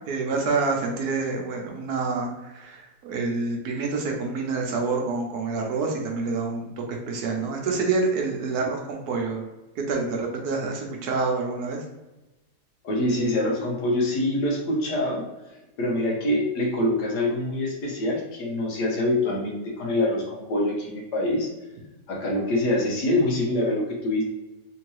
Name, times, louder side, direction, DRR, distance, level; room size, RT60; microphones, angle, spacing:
voice 1, 0.1-9.4 9.8-11.8, right 4 dB, 70° right, 1 dB, 1.2 m, -27 dB
voice 2, 12.8-15.3 15.8-21.5 22.1-24.2, left 1 dB, 80° left, -2 dB, 1.5 m, -25 dB
3.7 x 2.7 x 3.0 m, 1.0 s
omnidirectional pair, 1.8 m